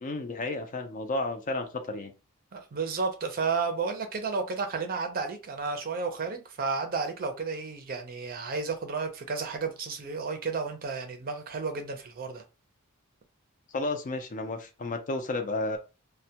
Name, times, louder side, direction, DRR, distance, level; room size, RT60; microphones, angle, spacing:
voice 1, 0.0-2.1 13.7-15.8, left 2 dB, 35° left, 0.4 m, -32 dB
voice 2, 2.5-12.4, right 4 dB, 40° right, 0.5 m, -32 dB
2.1 x 2.1 x 2.7 m
head